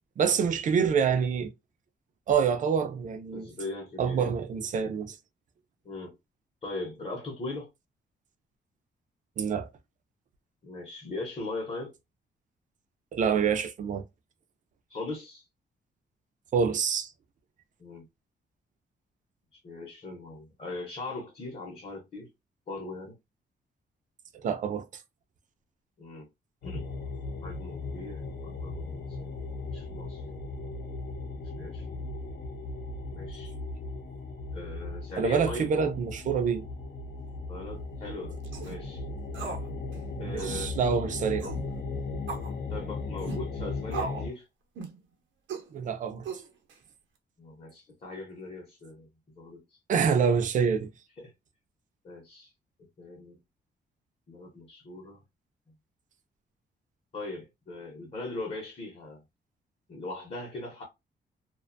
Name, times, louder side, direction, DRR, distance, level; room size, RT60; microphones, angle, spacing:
voice 1, 0.2-1.5 2.3-3.5 4.0-5.2 9.4-9.7 13.1-14.0 16.5-17.1 24.4-24.9 35.2-36.7 40.2-41.5 45.7-46.3 49.9-50.9, right 6 dB, 45° right, 0.4 m, -26 dB
voice 2, 3.3-4.3 5.8-6.2 6.6-7.7 10.6-11.9 14.9-15.4 17.8-18.1 19.5-22.3 22.7-23.2 26.0-26.3 26.6-26.9 27.4-29.4 29.7-30.2 31.4-32.1 33.1-33.6 34.5-35.9 37.5-39.0 40.2-40.8 42.7-44.5 47.4-49.1 49.3-49.8 51.2-51.3 52.0-52.5 53.0-53.4 54.3-55.2 57.1-59.2 59.9-60.8, left 2 dB, 35° left, 0.7 m, -39 dB
sound 1, 26.6-44.3, left 3 dB, 70° left, 0.6 m, -37 dB
sound 2, 38.4-38.8 39.3-39.7 39.9-40.0 40.4-40.6 41.4-41.7 42.3-42.5 43.2-43.4 43.9-44.3 44.8-45.0 45.5-45.7 46.2-46.7, right 5 dB, 85° right, 0.7 m, -37 dB
2.4 x 2.2 x 2.5 m
wide cardioid pair, 160°, 19 cm